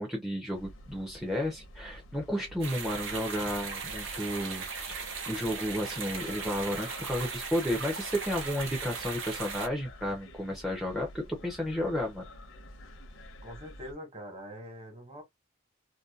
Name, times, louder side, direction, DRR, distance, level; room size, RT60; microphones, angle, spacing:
voice 1, 0.0-12.3, equal, ahead, 0.5 m, -32 dB
sound 1, 0.5-13.9, left 1 dB, 75° left, 0.7 m, -49 dB
sound 2, 2.6-9.7, right 5 dB, 70° right, 0.8 m, -38 dB
voice 2, 13.4-15.2, equal, 35° right, 1.3 m, -44 dB
2.6 x 2.2 x 2.3 m
head